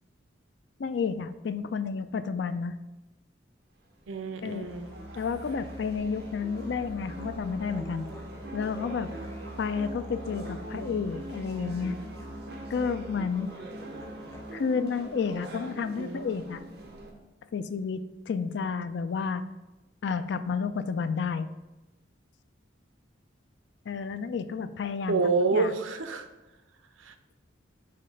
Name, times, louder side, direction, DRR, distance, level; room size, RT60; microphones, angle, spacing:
voice 1, 0.8-2.8 4.4-4.7 5.2-8.1 8.5-9.1 9.6-12.0 12.7-13.5 14.5-16.6 17.5-19.4 20.0-21.5 23.9-25.2 25.5-25.7, left 5 dB, 60° left, 12 dB, 0.4 m, -31 dB
sound 1, 4.0-17.1, right 1 dB, 55° right, 1.0 m, -43 dB
voice 2, 4.1-4.9 10.7-11.0 16.0-16.2 25.1-26.3 27.0-27.1, right 4 dB, 85° right, 9 dB, 0.5 m, -28 dB
Musical instrument, 4.6-14.8, equal, 10° left, 0.6 m, -45 dB
5.6 x 3.3 x 5.1 m, 1.0 s
head